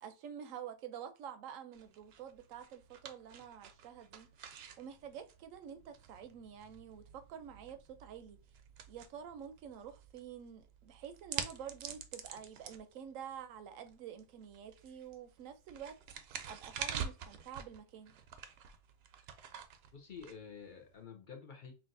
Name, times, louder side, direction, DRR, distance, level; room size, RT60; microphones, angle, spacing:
voice 1, 0.0-4.3 4.8-8.4 8.9-16.2 16.5-18.1, right 8 dB, 90° right, 1.0 m, -48 dB
sound 1, 1.7-21.0, right 7 dB, 65° right, 0.7 m, -48 dB
voice 2, 19.9-21.7, left 6 dB, 50° left, 0.7 m, -49 dB
5.8 x 2.5 x 2.6 m
omnidirectional pair, 1.3 m